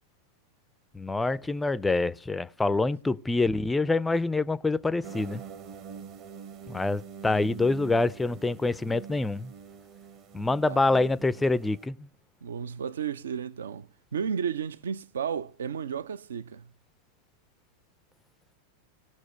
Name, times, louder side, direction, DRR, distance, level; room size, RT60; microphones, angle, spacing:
voice 1, 0.9-5.4 6.7-9.5 10.3-12.1, left 3 dB, 10° left, 0.4 m, -26 dB
sound 1, 5.0-11.9, right 7 dB, 40° right, 0.9 m, -45 dB
voice 2, 12.4-16.7, right 7 dB, 65° right, 0.5 m, -33 dB
18.5 x 6.3 x 4.3 m
figure-of-eight pair, 90°, 0 cm